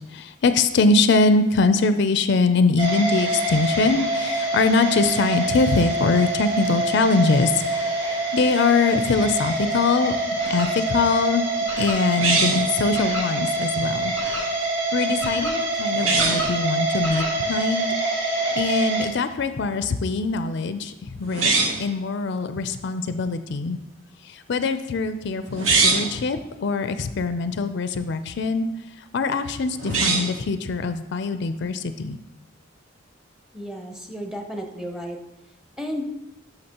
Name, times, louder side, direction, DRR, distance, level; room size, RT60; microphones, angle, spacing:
voice 1, 0.1-7.7 7.9-10.2 10.4-11.4 11.8-14.5 14.9-17.9 18.2-21.5 21.8-23.8 24.2-28.7 29.1-32.2, left 4 dB, 60° left, 10 dB, 0.4 m, -23 dB
sound 1, 2.8-19.1, right 2 dB, 65° right, 1.6 m, -25 dB
sound 2, 12.2-12.8 15.9-16.5 21.3-21.9 25.5-26.2 29.8-30.4, right 4 dB, 80° right, 1.1 m, -22 dB
voice 2, 33.5-35.2 35.8-36.0, equal, ahead, 3 dB, 0.7 m, -33 dB
11.5 x 5.9 x 2.9 m, 0.96 s
head